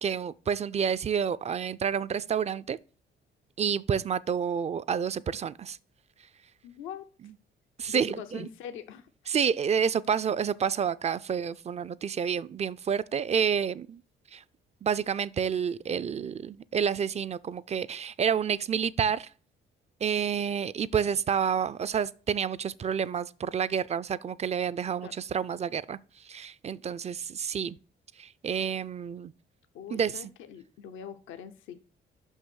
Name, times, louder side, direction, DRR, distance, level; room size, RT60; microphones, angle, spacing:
voice 1, 0.0-2.8 3.6-5.8 7.8-8.5 9.3-14.0 14.3-14.4 14.8-19.3 20.0-26.0 26.3-27.8 28.2-29.3 29.9-30.3, right 7 dB, 35° right, 0.4 m, -29 dB
voice 2, 6.6-7.1 7.9-9.1 25.0-25.1 29.7-31.8, left 9 dB, 85° left, 0.7 m, -42 dB
5.9 x 5.5 x 6.2 m
cardioid pair, 90°, 20 cm